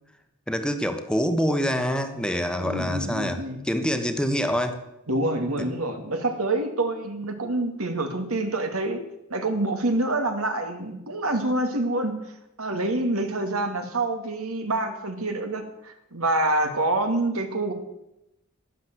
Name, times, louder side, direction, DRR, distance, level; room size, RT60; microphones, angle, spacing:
voice 1, 0.5-4.8 5.6-5.7, equal, 5° left, 7 dB, 1.1 m, -26 dB
voice 2, 2.6-3.6 5.1-9.0 9.3-12.1 12.6-17.7, right 2 dB, 85° right, 6 dB, 2.4 m, -26 dB
12.0 x 11.5 x 7.8 m, 0.87 s
head